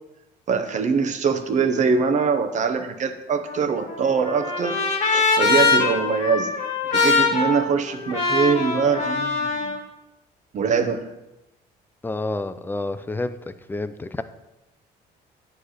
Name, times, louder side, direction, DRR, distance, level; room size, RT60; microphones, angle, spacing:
voice 1, 0.5-4.8 5.1-6.5 6.9-9.7 10.5-11.1, right 5 dB, 45° right, 8 dB, 0.8 m, -23 dB
Trumpet, 3.5-9.8, left 4 dB, 45° left, 1.7 m, -23 dB
voice 2, 12.0-13.4 13.7-14.2, left 2 dB, 10° left, 11 dB, 0.4 m, -29 dB
9.5 x 3.3 x 6.3 m, 0.98 s
cardioid pair, 110°, 17 cm